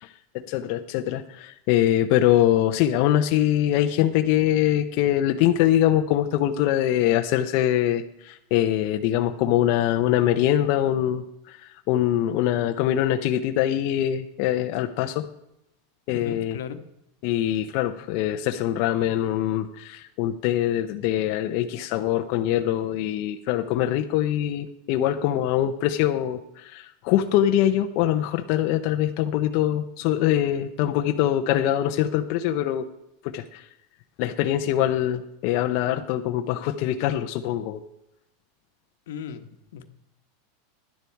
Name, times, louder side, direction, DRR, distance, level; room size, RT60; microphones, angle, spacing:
voice 1, 0.0-15.3 16.1-16.6 17.2-32.8 33.2-33.6 34.2-37.8, left 12 dB, 45° left, 5 dB, 0.7 m, -23 dB
voice 2, 16.1-16.8 39.1-39.5 39.7-39.9, left 7 dB, 80° left, 9 dB, 1.2 m, -36 dB
11.5 x 10.0 x 4.6 m, 0.82 s
supercardioid pair, 160°, 0 cm